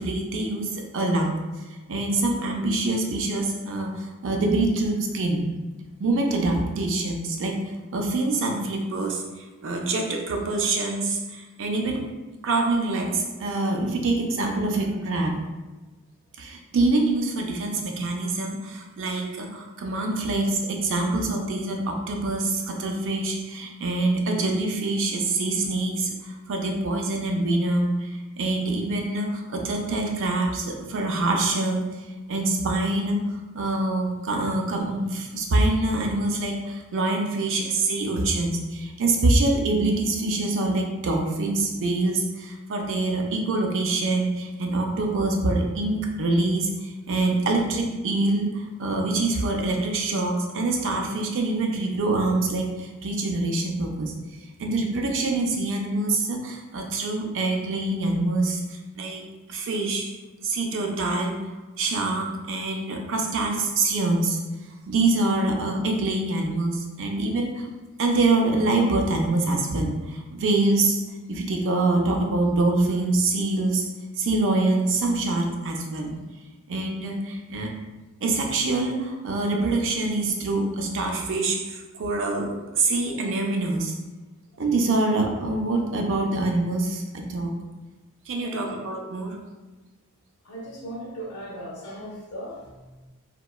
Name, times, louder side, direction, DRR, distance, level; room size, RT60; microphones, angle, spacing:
voice 1, 0.0-5.5 6.0-12.1 12.4-15.4 16.4-60.1 60.4-61.3 61.8-64.4 64.9-67.7 68.0-73.9 74.2-76.2 76.7-77.7 78.2-84.0 84.6-87.5 88.3-89.4, right 2 dB, 60° right, 2 dB, 0.4 m, -25 dB
voice 2, 88.4-88.8 90.4-93.1, right 1 dB, 75° left, -4 dB, 0.6 m, -38 dB
2.9 x 2.2 x 2.3 m, 1.2 s
head